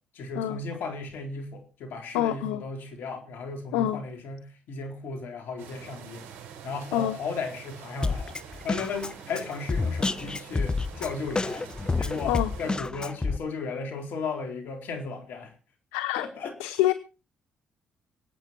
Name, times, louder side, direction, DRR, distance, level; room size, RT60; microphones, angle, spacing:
voice 1, 0.1-6.3 6.6-11.7 12.0-15.5 16.2-16.7, left 4 dB, 70° left, 5 dB, 4.0 m, -35 dB
voice 2, 2.1-2.6 3.7-4.0 6.9-7.2 12.3-12.5 15.9-16.3 16.6-16.9, left 13 dB, 90° left, 13 dB, 0.7 m, -26 dB
sound 1, 5.6-12.8, right 8 dB, 75° right, 4.2 m, -46 dB
Drum kit, 8.0-13.4, left 3 dB, 25° left, 1.0 m, -29 dB
24.5 x 9.0 x 4.5 m, 0.34 s
supercardioid pair, 55°, 3 cm